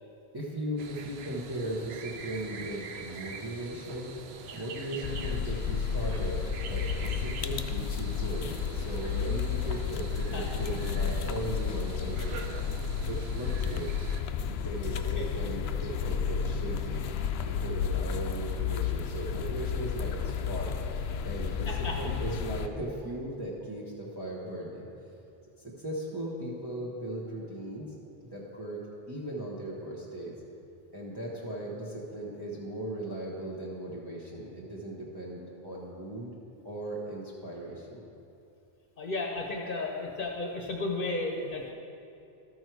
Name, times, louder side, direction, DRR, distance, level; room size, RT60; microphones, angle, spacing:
voice 1, 0.3-4.2 4.5-12.6 13.0-14.1 14.4-17.0 17.4-24.9 25.6-27.9 28.2-30.4 30.9-36.3 36.6-38.0, right 1 dB, 25° right, -6 dB, 1.1 m, -38 dB
sound 1, 0.8-14.2, right 5 dB, 85° right, 0.9 m, -45 dB
sound 2, 5.0-22.7, left 6 dB, 80° left, 0.8 m, -32 dB
voice 2, 21.7-22.0 39.0-41.7, left 2 dB, 55° left, 1 dB, 1.0 m, -33 dB
13.0 x 6.3 x 4.7 m, 2.7 s
omnidirectional pair, 1.0 m